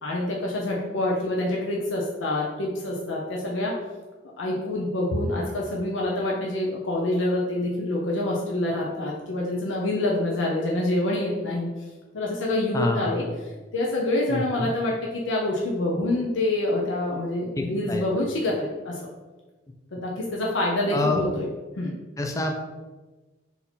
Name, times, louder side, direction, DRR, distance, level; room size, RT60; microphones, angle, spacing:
voice 1, 0.0-3.7 4.4-11.9 12.1-13.3 13.7-19.1 19.9-21.5 21.8-21.9, left 1 dB, 85° left, -3 dB, 0.6 m, -26 dB
voice 2, 12.7-13.2 14.3-14.7 17.6-18.0 20.9-21.2 22.2-22.6, left 2 dB, 15° left, 2 dB, 0.4 m, -27 dB
4.0 x 2.7 x 4.3 m, 1.2 s
head